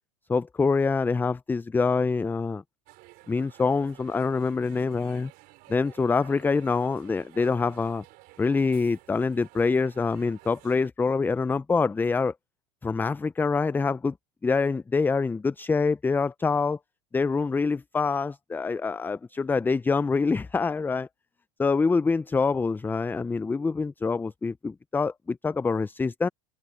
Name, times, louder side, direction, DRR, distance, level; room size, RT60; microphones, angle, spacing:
voice 1, 0.3-2.6 3.3-5.3 5.7-8.0 8.4-12.3 12.8-14.1 14.4-16.8 17.1-21.1 21.6-26.3, left 4 dB, 10° left, 0.4 m, -25 dB
sound 1, 2.9-10.9, right 22 dB, 60° right, 4.0 m, -53 dB
open air
supercardioid pair, 100°, 18 cm